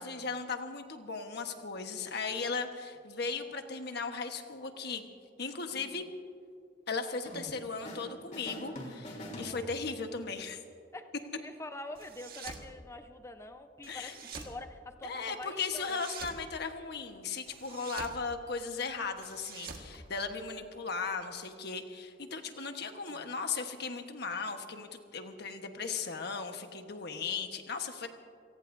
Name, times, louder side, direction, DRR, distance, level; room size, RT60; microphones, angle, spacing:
voice 1, 0.0-5.0 5.4-6.1 6.9-10.6 13.9-14.1 15.0-28.1, left 4 dB, 60° left, 6 dB, 1.3 m, -37 dB
voice 2, 5.7-6.0 9.3-9.8 10.9-16.0 22.5-22.7 23.1-23.3, left 2 dB, 15° left, 7 dB, 0.8 m, -46 dB
sound 1, 7.3-8.1 8.3-10.1, equal, 40° left, 3.4 m, -44 dB
sound 2, 12.0-12.7 13.8-14.6 15.7-16.4 17.5-18.2 19.2-20.7, right 5 dB, 55° right, 1.7 m, -46 dB
28.5 x 18.5 x 2.7 m, 2.5 s
head